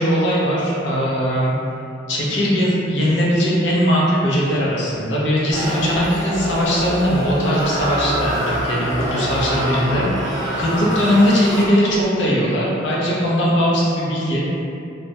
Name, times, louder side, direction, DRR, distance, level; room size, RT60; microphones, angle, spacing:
voice 1, 0.0-1.6 2.1-14.5, equal, 65° left, -6 dB, 0.5 m, -19 dB
sound 1, 5.5-12.1, right 1 dB, 20° right, 0.5 m, -25 dB
2.2 x 2.1 x 2.7 m, 2.6 s
head